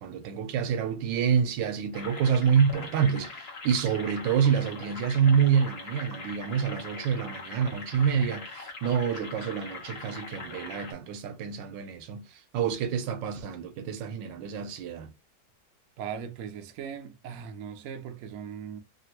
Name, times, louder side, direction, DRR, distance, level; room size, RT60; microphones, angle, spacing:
voice 1, 0.0-15.1, right 7 dB, 85° right, 1.3 m, -27 dB
sound 1, 1.9-10.9, left 4 dB, 45° left, 0.9 m, -42 dB
voice 2, 16.0-18.8, right 7 dB, 70° right, 0.9 m, -39 dB
3.3 x 2.1 x 2.8 m
omnidirectional pair, 2.0 m